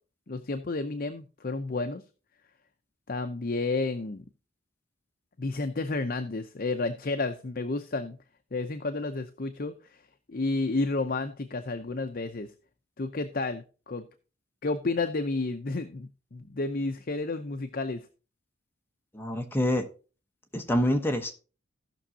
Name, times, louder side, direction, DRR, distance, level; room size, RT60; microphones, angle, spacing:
voice 1, 0.3-2.0 3.1-4.2 5.4-8.2 8.5-10.0 10.3-12.5 13.0-14.1 14.6-18.0, left 3 dB, 50° left, 0.6 m, -31 dB
voice 2, 19.1-19.8 20.5-21.3, left 1 dB, 10° left, 1.0 m, -26 dB
16.5 x 6.1 x 2.8 m
head